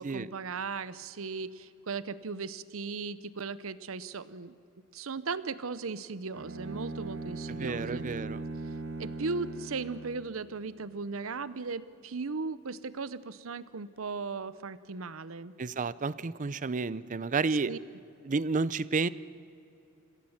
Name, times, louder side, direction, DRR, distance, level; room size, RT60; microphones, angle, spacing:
voice 1, 0.0-4.6 4.9-8.1 9.0-15.5 17.7-17.8, right 4 dB, 85° right, 16 dB, 0.8 m, -37 dB
Bowed string instrument, 6.3-10.4, right 3 dB, 65° right, 1.8 m, -39 dB
voice 2, 7.6-8.4 15.6-17.7 18.2-19.1, right 4 dB, 40° right, 18 dB, 0.5 m, -31 dB
26.5 x 16.0 x 7.3 m, 2.6 s
head